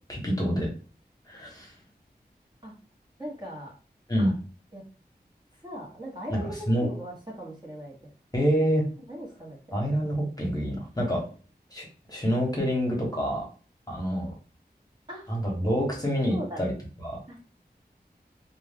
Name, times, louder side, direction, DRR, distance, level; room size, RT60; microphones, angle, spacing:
voice 1, 0.1-0.7 1.3-1.7 4.1-4.3 6.3-6.4 6.7-6.9 8.3-8.8 9.7-11.2 11.7-13.4 13.9-14.3 15.3-16.7 17.0-17.2, equal, 20° left, -2 dB, 1.1 m, -27 dB
voice 2, 3.2-3.7 4.2-4.3 4.7-4.8 5.6-7.9 9.1-9.8 15.1-15.2 16.3-16.6 17.3-17.4, equal, 25° right, -4 dB, 1.0 m, -39 dB
2.4 x 2.2 x 3.5 m, 0.38 s
wide cardioid pair, 55°, 17 cm